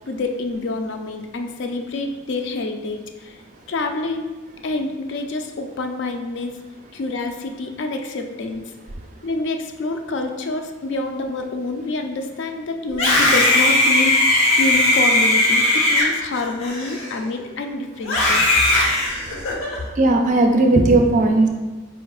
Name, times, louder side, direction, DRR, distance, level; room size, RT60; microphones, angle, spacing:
voice 1, 0.1-3.3 3.7-4.3 4.6-6.6 6.9-8.6 9.2-18.5, left 2 dB, 60° left, 5 dB, 0.4 m, -27 dB
Screaming, 12.9-17.4 18.0-19.8, left 1 dB, 90° left, 0.8 m, -18 dB
voice 2, 20.0-21.5, right 2 dB, 35° right, 4 dB, 0.4 m, -16 dB
4.3 x 3.8 x 2.3 m, 1.2 s
head